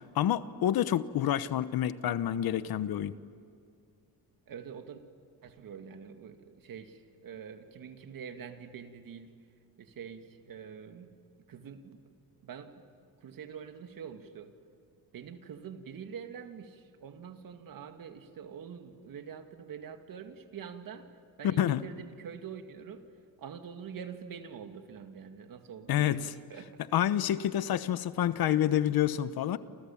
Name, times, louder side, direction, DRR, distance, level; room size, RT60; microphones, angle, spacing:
voice 1, 0.0-3.1 21.6-21.8 25.9-26.3 26.9-29.6, left 11 dB, 70° left, 14 dB, 1.1 m, -28 dB
voice 2, 4.5-5.0 5.4-9.3 9.8-11.1 11.5-12.0 12.4-12.8 13.2-14.5 15.1-21.1 21.4-23.0 23.4-27.0, right 7 dB, 60° right, 6 dB, 2.3 m, -45 dB
28.5 x 28.5 x 7.4 m, 2.2 s
cardioid pair, 105°, 38 cm